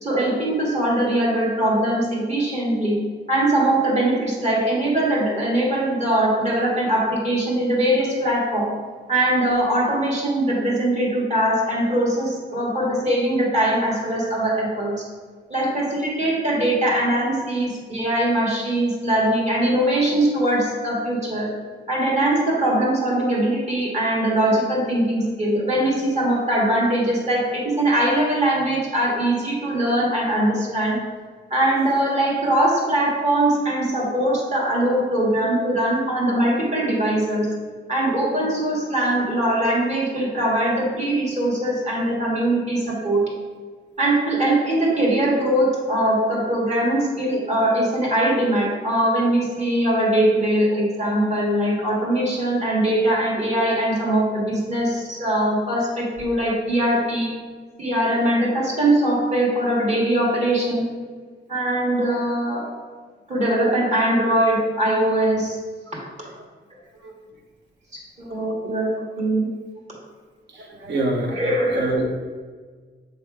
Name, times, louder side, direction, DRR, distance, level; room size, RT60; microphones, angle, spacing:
voice 1, 0.0-3.0 3.3-8.7 9.1-14.9 15.5-21.5 21.9-31.0 31.5-37.5 37.9-43.2 44.0-57.3 57.8-60.9 61.5-62.7 63.3-65.6 67.9-69.5 71.3-71.8, right 1 dB, 40° right, -4 dB, 1.7 m, -21 dB
voice 2, 70.5-72.1, right 2 dB, 70° right, 2 dB, 1.0 m, -26 dB
6.7 x 3.4 x 4.7 m, 1.5 s
wide cardioid pair, 170°, 18 cm